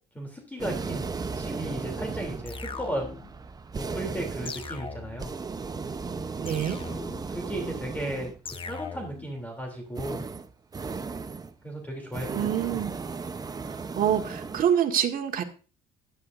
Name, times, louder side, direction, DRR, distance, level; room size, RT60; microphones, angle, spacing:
voice 1, 0.1-1.1 1.4-3.1 3.8-5.3 7.3-8.3 8.7-10.2 11.6-12.8, right 1 dB, 10° left, 3 dB, 3.1 m, -35 dB
sound 1, 0.6-8.5 9.9-11.6 12.0-14.6, right 4 dB, 25° right, 0.8 m, -36 dB
sound 2, 2.5-3.4 4.5-5.4 6.5-7.4 8.5-9.3, left 4 dB, 30° left, 1.0 m, -39 dB
voice 2, 6.4-6.8 12.3-13.0 14.0-15.4, right 9 dB, 55° right, 5 dB, 1.8 m, -26 dB
13.5 x 11.0 x 2.6 m, 0.35 s
cardioid pair, 110°, 17 cm